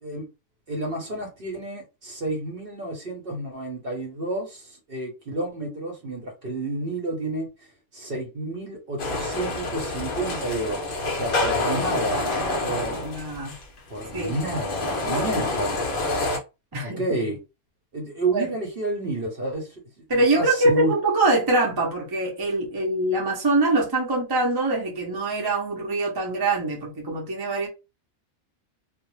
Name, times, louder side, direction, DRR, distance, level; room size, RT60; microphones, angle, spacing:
voice 1, 0.7-7.5 7.9-12.2 12.6-13.0 13.9-15.8 16.8-17.4 17.9-19.7 20.1-20.9, right 2 dB, 50° right, 0.8 m, -30 dB
sound 1, 9.0-16.4, left 2 dB, 55° left, 0.6 m, -27 dB
voice 2, 12.9-13.6 14.1-14.3 15.2-15.4 16.7-17.0 18.3-18.5 20.1-27.7, right 2 dB, 25° right, 0.5 m, -24 dB
2.4 x 2.1 x 3.0 m
omnidirectional pair, 1.5 m